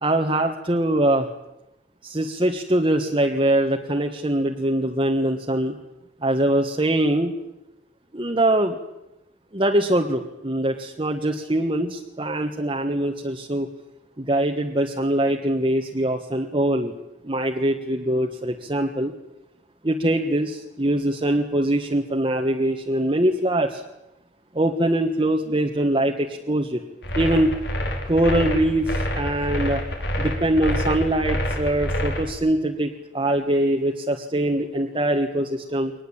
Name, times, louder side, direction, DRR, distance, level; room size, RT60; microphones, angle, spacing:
voice 1, 0.0-1.3 2.0-5.7 6.2-7.3 8.1-8.8 9.5-13.7 14.2-16.9 17.2-19.1 19.8-23.8 24.5-26.8 27.1-27.6 28.1-29.8 30.2-35.9, right 1 dB, 30° right, 2 dB, 1.5 m, -23 dB
sound 1, 27.0-32.3, equal, 70° left, 4.8 m, -26 dB
23.5 x 20.0 x 8.8 m, 0.93 s
head